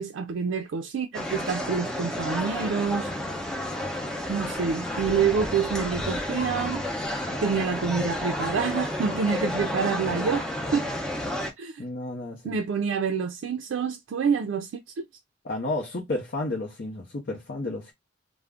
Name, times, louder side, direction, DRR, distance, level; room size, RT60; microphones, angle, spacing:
voice 1, 0.0-3.1 4.3-6.8 7.4-10.5 10.7-10.9 11.6-11.8 12.4-15.0, right 6 dB, 85° right, 0.4 m, -27 dB
sound 1, 1.1-11.5, left 1 dB, 5° left, 0.5 m, -31 dB
voice 2, 11.8-12.6 15.4-17.9, left 2 dB, 55° left, 0.6 m, -32 dB
2.3 x 2.0 x 3.4 m
head